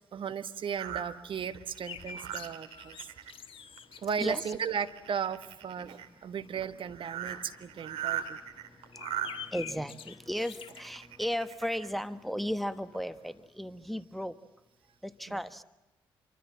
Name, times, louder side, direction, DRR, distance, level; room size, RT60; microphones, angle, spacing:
voice 1, 0.1-3.0 4.0-8.4 15.3-15.4, right 7 dB, 50° right, 9 dB, 1.4 m, -35 dB
sound 1, 0.8-3.3 3.8-4.1 4.4-6.1 6.6-6.7 6.9-9.3 10.3-11.9 12.5-12.6 12.9-13.0, right 10 dB, 70° right, 2.4 m, -39 dB
sound 2, 1.8-11.9 12.2-12.3 12.6-13.5, left 7 dB, 55° left, 1.4 m, -48 dB
voice 2, 9.5-14.3 15.0-15.6, equal, ahead, 11 dB, 1.3 m, -35 dB
27.5 x 24.5 x 7.5 m, 1.0 s
hypercardioid pair, 45°, 11 cm